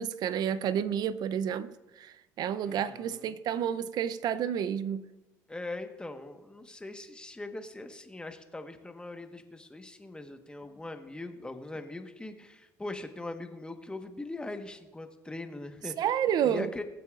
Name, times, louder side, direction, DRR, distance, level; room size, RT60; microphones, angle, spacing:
voice 1, 0.0-5.0 16.0-16.7, right 9 dB, 60° right, 0.6 m, -30 dB
voice 2, 2.6-3.4 5.5-15.9 16.4-16.8, left 2 dB, 10° left, 1.3 m, -41 dB
22.0 x 8.3 x 2.5 m
supercardioid pair, 75°, 8 cm